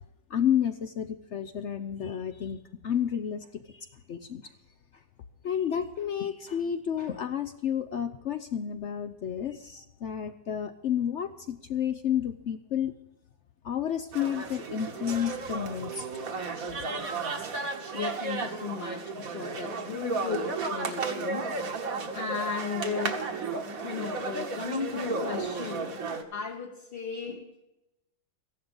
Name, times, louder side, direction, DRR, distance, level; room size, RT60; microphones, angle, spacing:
voice 1, 0.3-4.5 5.4-12.9 13.6-16.1, left 9 dB, 65° left, 0.7 m, -31 dB
sound 1, 14.1-26.2, right 4 dB, 55° right, 1.6 m, -34 dB
voice 2, 17.9-21.5 22.1-23.2 23.8-26.0 26.3-27.5, left 6 dB, 40° left, 1.1 m, -35 dB
14.5 x 11.0 x 5.2 m
omnidirectional pair, 1.8 m